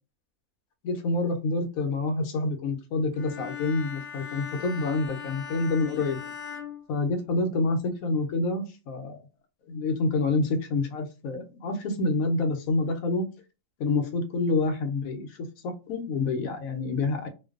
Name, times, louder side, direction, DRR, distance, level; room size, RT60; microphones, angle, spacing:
voice 1, 0.8-6.2 6.9-9.2 9.7-13.2 13.8-17.3, left 3 dB, 80° left, 5 dB, 1.0 m, -27 dB
Bowed string instrument, 3.1-7.6, left 7 dB, 60° left, 0.6 m, -40 dB
2.5 x 2.2 x 2.3 m, 0.30 s
omnidirectional pair, 1.5 m